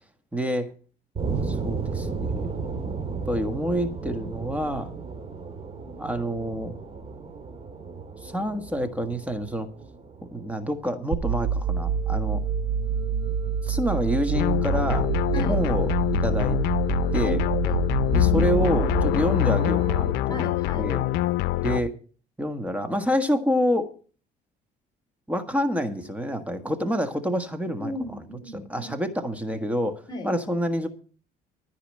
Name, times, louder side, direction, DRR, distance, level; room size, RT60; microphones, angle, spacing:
voice 1, 0.3-0.7 1.4-2.6 3.3-4.9 6.0-6.8 8.2-9.7 10.3-12.4 13.6-15.9 16.2-16.6 17.1-17.4 18.1-20.5 20.8-21.0 21.6-21.9 22.4-23.9 25.3-27.9 28.5-30.9, equal, 10° right, 7 dB, 1.5 m, -27 dB
sound 1, 1.2-11.9, right 4 dB, 35° right, 2.2 m, -34 dB
sound 2, 11.1-20.1, right 6 dB, 85° right, 0.8 m, -27 dB
sound 3, 14.3-21.8, left 15 dB, 85° left, 0.5 m, -25 dB
voice 2, 17.2-17.9 20.3-20.9 27.8-28.9 30.1-30.3, left 2 dB, 25° left, 3 dB, 3.1 m, -35 dB
14.0 x 4.9 x 8.8 m, 0.39 s
cardioid pair, 110°, 17 cm